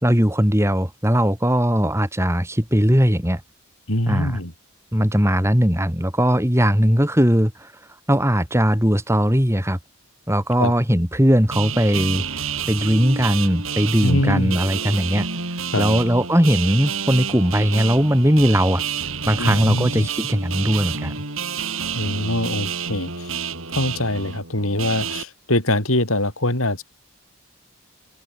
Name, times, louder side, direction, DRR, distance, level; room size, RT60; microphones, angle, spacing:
voice 1, 0.0-3.4 4.1-4.4 4.9-7.7 8.1-9.8 10.3-12.2 12.7-15.3 15.8-18.8 19.3-21.1, equal, 10° right, 4.6 m, -19 dB
voice 2, 3.9-4.5 10.6-10.7 14.0-14.6 15.7-16.0 19.4-20.1 21.9-23.4 23.7-26.8, left 1 dB, 75° left, 7.3 m, -23 dB
sound 1, 11.5-25.2, right 6 dB, 70° right, 6.9 m, -29 dB
head